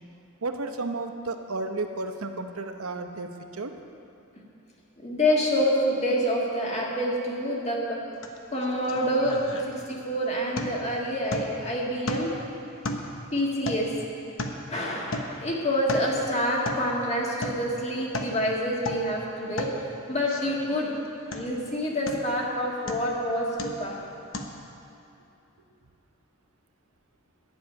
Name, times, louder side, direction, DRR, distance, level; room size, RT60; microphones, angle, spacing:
voice 1, 0.4-3.7, right 3 dB, 85° right, 6 dB, 0.9 m, -32 dB
voice 2, 5.0-8.0 8.5-12.4 13.3-13.9 14.7-19.7 20.1-20.9 21.3-23.5 23.8-24.0, equal, 30° left, -3 dB, 1.8 m, -27 dB
sound 1, 8.2-8.4 8.6-10.1 10.6-10.9 11.3-11.7 12.1-12.5 12.8-14.7 15.1-15.4 15.7-16.2 16.7-16.9 17.4-17.7 18.0-18.4 18.8-19.1 19.6-19.8 20.3-21.0 21.3-21.6 22.1-22.4 22.9-23.2 23.6-23.9 24.3-24.4, left 1 dB, 65° left, 1.0 m, -35 dB
11.0 x 7.0 x 9.3 m, 2.8 s
head